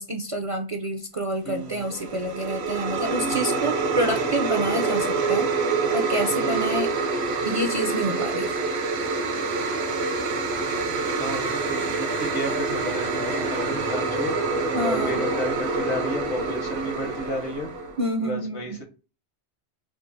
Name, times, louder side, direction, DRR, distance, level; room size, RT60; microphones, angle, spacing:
voice 1, 0.0-5.5 5.9-6.9 7.4-8.5 14.7-15.2 18.0-18.8, right 1 dB, 45° right, 4 dB, 0.5 m, -28 dB
voice 2, 1.4-1.9 3.2-3.6 4.0-4.3 6.4-6.7 11.2-17.7 18.2-18.8, equal, 75° left, 3 dB, 1.5 m, -33 dB
sound 1, 1.6-18.1, right 4 dB, 70° right, 1.0 m, -26 dB
3.8 x 2.8 x 4.0 m, 0.33 s
omnidirectional pair, 1.1 m